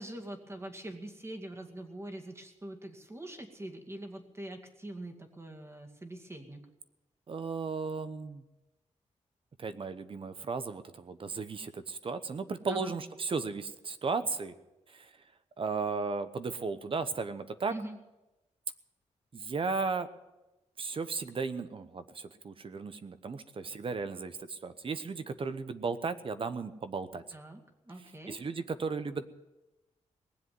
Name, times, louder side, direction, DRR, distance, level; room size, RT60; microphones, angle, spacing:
voice 1, 0.0-6.6 12.7-12.9 17.7-18.0 27.3-27.6 27.9-28.4, right 1 dB, 20° right, 4 dB, 2.2 m, -43 dB
voice 2, 7.3-8.4 9.6-14.6 14.9-15.1 15.6-17.7 19.3-20.1 20.8-27.2 28.3-29.3, right 4 dB, 45° right, 12 dB, 0.9 m, -35 dB
19.5 x 7.8 x 9.5 m, 1.0 s
cardioid pair, 100°, 12 cm